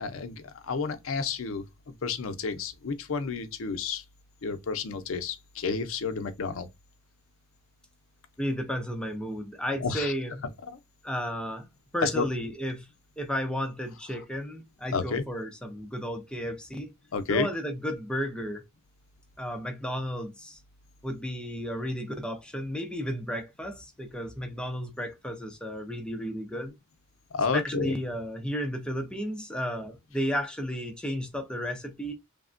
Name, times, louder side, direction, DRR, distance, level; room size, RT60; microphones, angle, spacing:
voice 1, 0.0-1.6 2.0-4.0 4.4-6.7 9.8-10.1 12.0-12.3 14.9-15.2 17.1-17.5 27.3-27.9, left 5 dB, 80° left, 0.5 m, -30 dB
voice 2, 8.4-10.4 11.0-11.7 11.9-12.9 13.2-16.9 17.3-18.6 19.4-20.6 21.0-26.7 27.6-32.1, equal, 5° left, 0.4 m, -33 dB
3.3 x 2.1 x 2.4 m
head